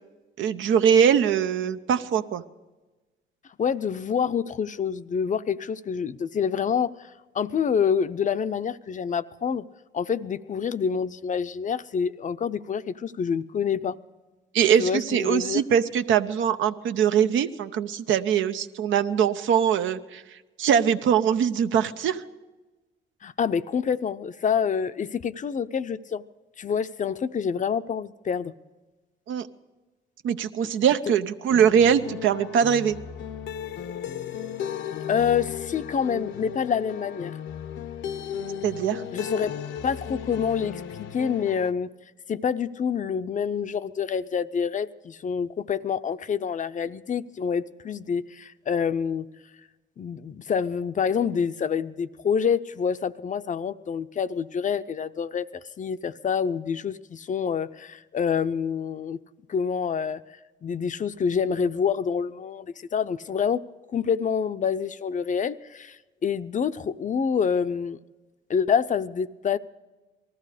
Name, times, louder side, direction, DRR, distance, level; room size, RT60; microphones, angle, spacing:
voice 1, 0.4-2.4 14.5-22.2 29.3-29.5 30.2-33.0 38.6-39.0, right 8 dB, 75° right, 10 dB, 0.8 m, -22 dB
voice 2, 3.6-9.7 9.9-14.0 14.8-15.6 23.2-26.2 26.6-28.5 35.1-37.4 39.1-41.9 42.3-49.3 50.0-55.5 55.8-59.2 59.5-60.2 60.6-63.6 63.9-68.0 68.5-69.6, left 7 dB, 40° left, 13 dB, 0.6 m, -27 dB
sound 1, 31.5-41.7, left 8 dB, 70° left, 0.8 m, -35 dB
19.0 x 14.0 x 5.0 m, 1.2 s
cardioid pair, 90°, 20 cm